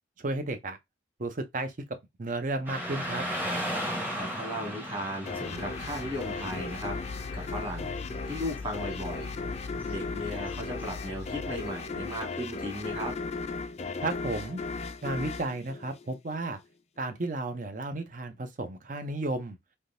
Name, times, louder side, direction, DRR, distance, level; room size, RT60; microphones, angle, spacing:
voice 1, 0.2-0.8 1.2-1.7 2.2-3.2 14.0-14.6 15.0-16.6 17.0-19.6, right 2 dB, 45° right, 0.6 m, -33 dB
Car passing by / Traffic noise roadway noise, 2.7-11.7, equal, 10° right, 0.9 m, -38 dB
voice 2, 4.2-7.0 7.3-8.0 8.2-9.3 9.9-13.1, equal, 30° right, 1.7 m, -36 dB
sound 1, 5.3-11.7, left 4 dB, 85° left, 0.6 m, -41 dB
sound 2, 5.3-16.5, left 4 dB, 35° left, 0.4 m, -37 dB
3.5 x 2.8 x 2.6 m
head